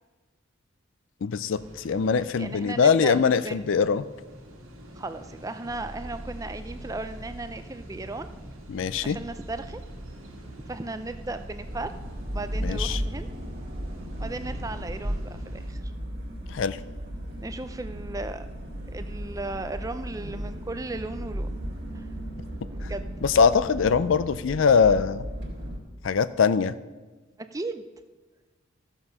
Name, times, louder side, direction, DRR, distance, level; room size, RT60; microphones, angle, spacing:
voice 1, 1.2-4.1 8.7-9.2 12.6-13.0 16.5-16.8 23.2-25.2 26.0-26.7, left 6 dB, 65° left, 15 dB, 0.4 m, -22 dB
sound 1, 1.5-15.7, equal, 85° right, 2.0 m, -48 dB
voice 2, 2.4-3.6 5.0-8.3 9.0-9.8 10.7-11.9 12.3-13.3 14.2-15.8 17.4-18.5 18.9-21.5 21.9-22.1 22.7-23.1 27.5-27.9, right 2 dB, 15° right, 10 dB, 0.4 m, -36 dB
sound 2, 5.7-24.0, right 1 dB, 35° right, 0.9 m, -44 dB
sound 3, 11.6-25.8, equal, 50° right, 1.8 m, -35 dB
14.5 x 7.0 x 5.5 m, 1.3 s
head